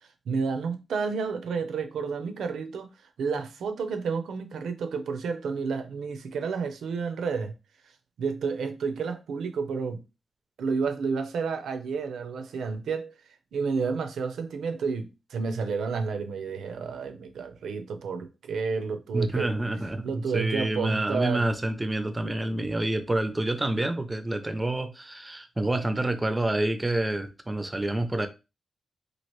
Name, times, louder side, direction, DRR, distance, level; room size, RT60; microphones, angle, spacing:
voice 1, 0.3-2.9 3.2-7.5 8.2-10.0 10.6-13.1 13.5-19.5 20.0-21.5, right 5 dB, 85° right, 0.5 m, -30 dB
voice 2, 19.1-28.3, right 1 dB, 20° right, 0.5 m, -28 dB
3.0 x 2.4 x 3.0 m
cardioid pair, 80°, 0 cm